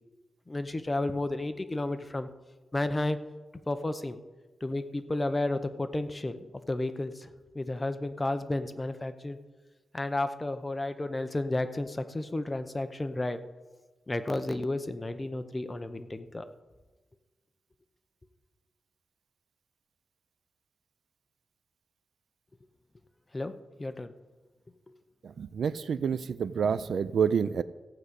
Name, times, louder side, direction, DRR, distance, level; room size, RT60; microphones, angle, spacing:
voice 1, 0.5-2.3 2.7-3.2 3.7-4.2 4.6-7.3 7.5-9.4 9.9-13.4 14.1-16.5 23.3-23.5 23.8-24.1, left 2 dB, 20° left, 9 dB, 0.7 m, -32 dB
voice 2, 25.4-27.6, right 7 dB, 75° right, 14 dB, 0.4 m, -28 dB
15.0 x 5.0 x 8.2 m, 1.2 s
wide cardioid pair, 130°, 0 cm